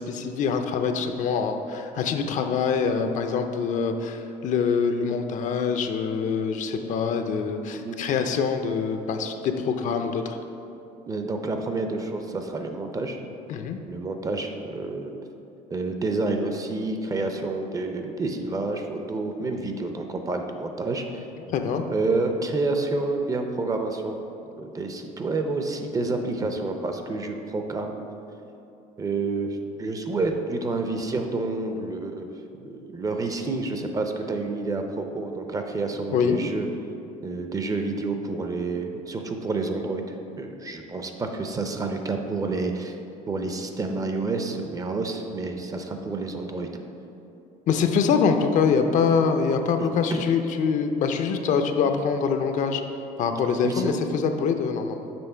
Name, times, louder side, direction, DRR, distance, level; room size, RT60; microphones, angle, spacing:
voice 1, 0.0-10.4 13.5-13.8 21.5-21.8 36.1-36.4 47.7-52.8 53.2-55.1, left 6 dB, 55° left, 6 dB, 0.5 m, -24 dB
voice 2, 11.1-13.2 13.8-15.2 15.7-21.2 21.6-24.1 24.6-27.9 29.0-32.3 32.6-36.7 37.2-43.0 43.3-46.7 49.8-50.2 53.6-53.9, right 3 dB, 20° right, 5 dB, 0.5 m, -29 dB
6.9 x 3.2 x 5.5 m, 2.8 s
cardioid pair, 125°, 16 cm